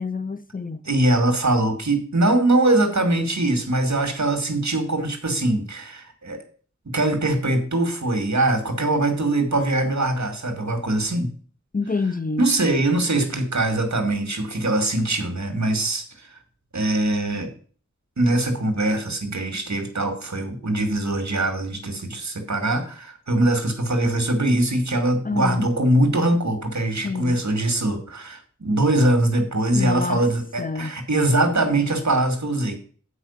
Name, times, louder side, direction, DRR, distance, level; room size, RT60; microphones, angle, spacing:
voice 1, 0.0-0.9 11.7-12.5 25.2-25.7 27.0-27.4 29.7-30.2 30.6-31.0, left 4 dB, 30° left, 0.6 m, -27 dB
voice 2, 0.9-6.4 6.9-11.3 12.4-16.0 16.7-17.5 18.2-32.7, right 1 dB, 75° right, 2.2 m, -22 dB
8.4 x 5.0 x 7.1 m
wide cardioid pair, 50°, 29 cm